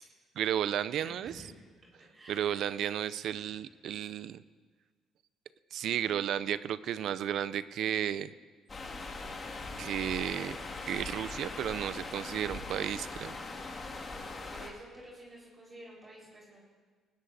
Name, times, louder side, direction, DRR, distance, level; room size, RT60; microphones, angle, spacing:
voice 1, 0.4-1.4 2.3-4.4 5.7-8.3 9.8-10.6 10.8-13.4, right 10 dB, 65° right, 15 dB, 0.4 m, -33 dB
voice 2, 1.0-2.7 14.4-16.6, right 1 dB, 30° right, -4 dB, 4.6 m, -51 dB
sound 1, 8.7-14.7, left 3 dB, 35° left, 2.1 m, -41 dB
19.5 x 16.5 x 2.7 m, 1.5 s
cardioid pair, 85°, 0 cm